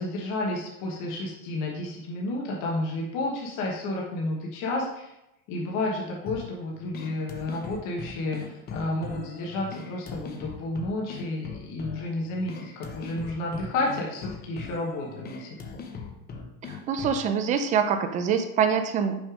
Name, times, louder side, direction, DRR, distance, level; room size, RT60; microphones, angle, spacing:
voice 1, 0.0-5.1 5.5-15.5, left 2 dB, 45° left, -2 dB, 1.3 m, -31 dB
sound 1, 6.3-17.3, left 6 dB, 20° left, 0.6 m, -40 dB
voice 2, 16.7-19.2, right 7 dB, 20° right, 7 dB, 0.3 m, -25 dB
6.2 x 3.3 x 4.9 m, 0.87 s
supercardioid pair, 130°, 45 cm